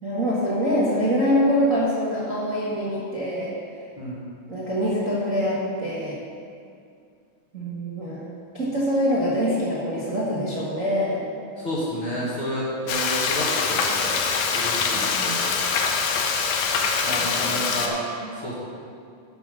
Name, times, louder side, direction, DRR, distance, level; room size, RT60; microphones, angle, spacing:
voice 1, 0.0-3.5 4.5-6.2 7.5-8.3 8.5-11.2 14.9-15.4 17.5-18.3, equal, 45° right, -8 dB, 1.0 m, -25 dB
voice 2, 11.6-14.2 14.5-15.6 17.0-18.0 18.4-18.5, equal, 50° left, -6 dB, 1.6 m, -30 dB
Frying (food), 12.9-17.9, left 5 dB, 75° left, 1.6 m, -24 dB
10.5 x 5.9 x 6.2 m, 2.4 s
omnidirectional pair, 4.1 m